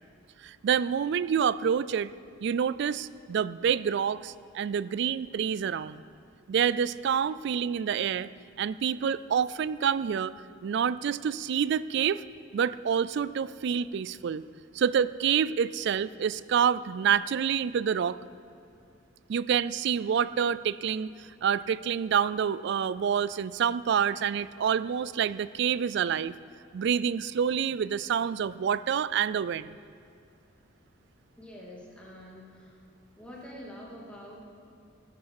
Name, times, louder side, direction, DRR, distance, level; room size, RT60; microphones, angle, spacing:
voice 1, 0.4-2.1 2.4-6.0 6.5-8.3 8.6-10.3 10.6-12.2 12.5-14.4 14.7-18.2 19.3-21.1 21.4-26.3 26.7-29.8, right 7 dB, 60° right, 17 dB, 0.3 m, -27 dB
voice 2, 31.4-32.7 33.1-34.5, equal, 5° left, -5 dB, 2.6 m, -46 dB
19.5 x 9.3 x 4.8 m, 2.5 s
head